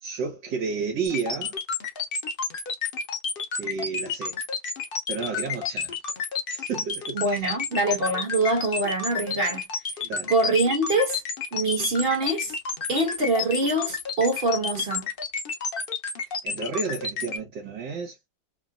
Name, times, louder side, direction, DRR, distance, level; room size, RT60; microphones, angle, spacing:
voice 1, 0.0-1.6 3.6-4.4 5.1-5.9 6.5-7.4 10.0-10.3 16.4-18.2, right 5 dB, 65° right, 1.8 m, -31 dB
sound 1, 1.0-17.4, left 5 dB, 80° left, 0.5 m, -30 dB
voice 2, 7.1-9.6 10.3-11.2 11.5-12.5 12.9-15.0, right 2 dB, 30° right, 1.4 m, -24 dB
3.7 x 2.3 x 2.5 m
omnidirectional pair, 2.2 m